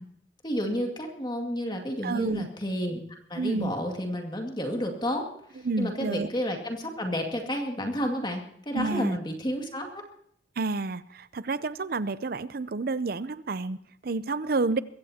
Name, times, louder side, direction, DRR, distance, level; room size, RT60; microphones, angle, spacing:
voice 1, 0.4-10.0, equal, 25° left, 3 dB, 2.2 m, -31 dB
voice 2, 2.0-2.5 3.4-3.7 5.6-6.3 8.7-9.2 10.6-14.8, right 3 dB, 55° right, 15 dB, 0.6 m, -29 dB
22.5 x 16.0 x 2.9 m, 0.70 s
head